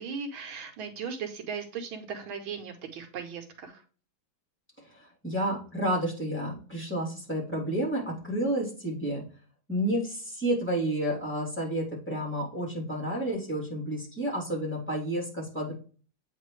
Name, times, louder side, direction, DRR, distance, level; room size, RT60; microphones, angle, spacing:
voice 1, 0.0-3.8, right 6 dB, 85° right, 5 dB, 1.8 m, -37 dB
voice 2, 4.9-9.2 9.7-15.7, right 1 dB, 5° left, -5 dB, 2.7 m, -30 dB
8.3 x 3.8 x 3.1 m, 0.39 s
omnidirectional pair, 2.2 m